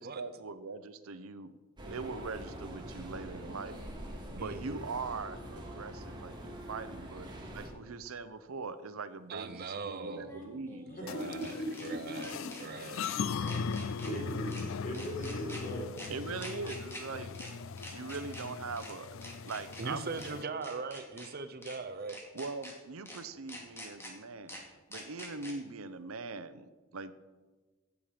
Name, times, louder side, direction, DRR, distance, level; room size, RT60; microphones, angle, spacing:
voice 1, 0.0-1.5 1.9-3.8 4.3-10.9 16.1-17.4 17.9-20.7 22.3-24.6 24.9-26.6 26.9-27.1, right 4 dB, 85° right, 12 dB, 0.8 m, -41 dB
sound 1, 1.8-7.7, right 1 dB, 20° right, 1.9 m, -44 dB
voice 2, 4.4-4.9 9.3-10.3 10.9-13.6 19.8-22.2, right 4 dB, 50° right, 8 dB, 0.8 m, -41 dB
sound 2, 7.6-7.7 10.0-11.9 12.2-12.6 13.0-13.2 13.5-14.1 14.5-14.6 14.9-15.6 16.0-16.1 16.4-17.0 17.3-17.5 17.8-18.4 18.8-18.9 19.2-19.8 20.2-20.3 20.6-21.3 21.6-21.8 22.1-22.7 23.1-23.2 23.5-24.1 24.5-24.6 24.9-25.5, left 1 dB, 10° left, 2.4 m, -46 dB
voice 3, 11.0-12.6 14.0-16.1, equal, 40° left, -1 dB, 3.9 m, -39 dB
sound 3, 11.1-20.4, left 5 dB, 65° left, 0.4 m, -39 dB
16.5 x 7.3 x 5.1 m, 1.3 s
head